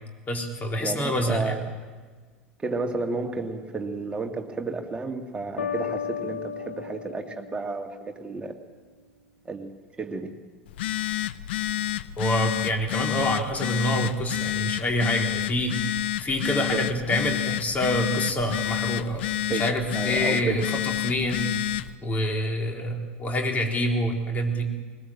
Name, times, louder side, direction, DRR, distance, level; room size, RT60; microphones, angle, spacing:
voice 1, 0.3-1.6 12.2-15.8 16.2-21.5 22.0-24.6, equal, 25° left, 2 dB, 4.0 m, -26 dB
voice 2, 0.8-1.6 2.6-8.5 9.4-10.3 16.5-16.8 19.5-19.7 19.9-20.6, right 3 dB, 15° right, 4 dB, 2.4 m, -32 dB
sound 1, 5.6-8.4, left 7 dB, 75° left, 1.1 m, -34 dB
Telephone, 10.7-21.9, left 13 dB, 60° left, 0.7 m, -29 dB
21.0 x 20.5 x 7.7 m, 1.4 s
figure-of-eight pair, 80°, 7 cm